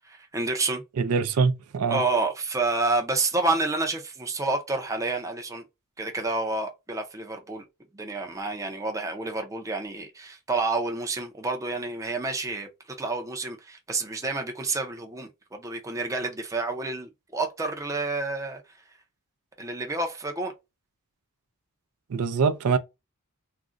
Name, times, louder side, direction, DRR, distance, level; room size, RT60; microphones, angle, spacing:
voice 1, 0.0-0.8 1.9-5.7 6.0-7.6 7.9-12.7 13.0-18.6 19.6-20.5, right 3 dB, 15° right, 0.5 m, -29 dB
voice 2, 1.0-2.0 22.1-22.8, right 5 dB, 80° right, 0.4 m, -24 dB
2.5 x 2.1 x 3.6 m
head